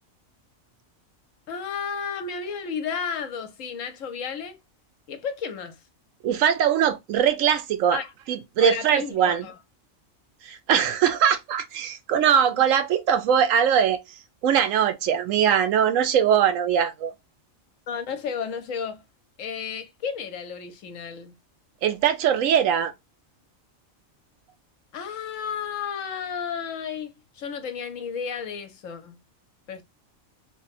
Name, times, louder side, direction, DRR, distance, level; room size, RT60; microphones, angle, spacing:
voice 1, 1.5-4.6 5.1-5.8 7.9-8.1 8.6-9.6 17.9-19.0 19.4-21.4 24.9-29.2 29.7-29.8, left 6 dB, 75° left, 1.1 m, -32 dB
voice 2, 6.2-8.0 8.3-9.4 10.4-14.0 14.4-17.1 21.8-22.9, right 8 dB, 75° right, 1.0 m, -21 dB
3.1 x 2.2 x 4.1 m
omnidirectional pair, 1.4 m